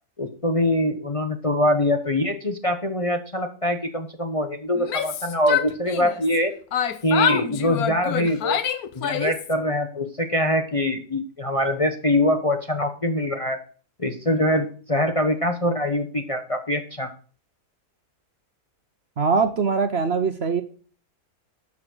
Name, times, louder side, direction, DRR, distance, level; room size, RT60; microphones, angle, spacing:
voice 1, 0.2-6.5 7.0-8.6 8.9-13.6 14.0-17.1, left 1 dB, 25° left, 5 dB, 0.9 m, -23 dB
Yell, 4.7-6.4 6.7-9.5, left 9 dB, 75° left, 1.3 m, -26 dB
voice 2, 19.2-20.6, right 5 dB, 50° right, 8 dB, 1.0 m, -22 dB
12.5 x 5.0 x 6.2 m, 0.40 s
omnidirectional pair, 1.6 m